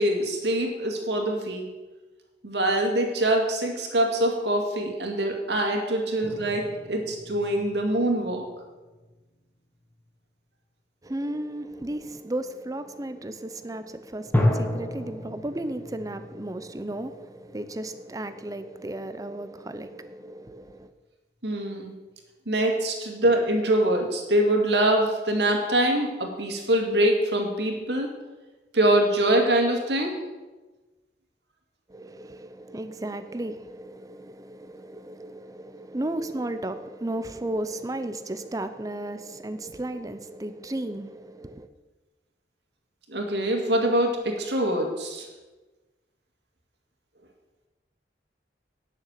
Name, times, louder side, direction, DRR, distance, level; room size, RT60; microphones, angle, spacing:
voice 1, 0.0-1.7 2.4-8.5 21.4-21.9 22.5-28.1 28.7-30.2 43.1-45.3, right 1 dB, 75° right, 2.2 m, -24 dB
sound 1, 6.2-9.2 9.7-10.1 14.3-18.7, left 1 dB, 10° left, 1.1 m, -32 dB
voice 2, 11.0-20.9 31.9-41.7, right 1 dB, 20° right, 0.6 m, -34 dB
10.5 x 6.7 x 7.4 m
head